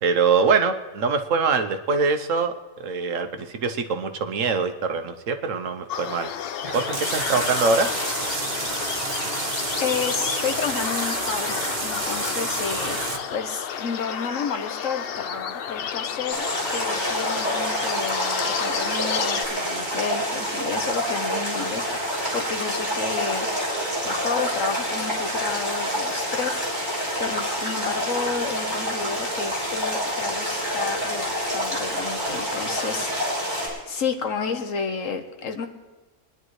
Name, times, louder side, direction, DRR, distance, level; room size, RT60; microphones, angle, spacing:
voice 1, 0.0-6.3 6.7-7.9, right 4 dB, 75° right, 8 dB, 1.2 m, -23 dB
sound 1, 5.9-19.5, left 8 dB, 55° left, 0.7 m, -31 dB
sound 2, 6.6-13.2, right 3 dB, 35° right, 1.4 m, -29 dB
voice 2, 9.8-23.5 24.0-35.7, left 5 dB, 75° left, 6 dB, 1.4 m, -31 dB
sound 3, 16.3-33.7, equal, 20° right, 4.7 m, -27 dB
23.5 x 10.5 x 3.2 m, 1.2 s
omnidirectional pair, 1.4 m